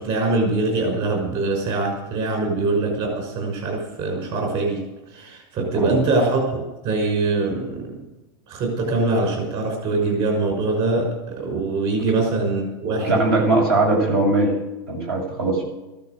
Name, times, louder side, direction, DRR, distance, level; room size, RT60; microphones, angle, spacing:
voice 1, 0.0-4.8 5.1-8.0 8.5-13.2, right 3 dB, 45° right, 1 dB, 5.9 m, -23 dB
voice 2, 13.0-14.5 14.9-15.6, right 2 dB, 80° right, 0 dB, 7.3 m, -20 dB
15.0 x 12.5 x 6.8 m, 1.0 s
supercardioid pair, 145°, 13 cm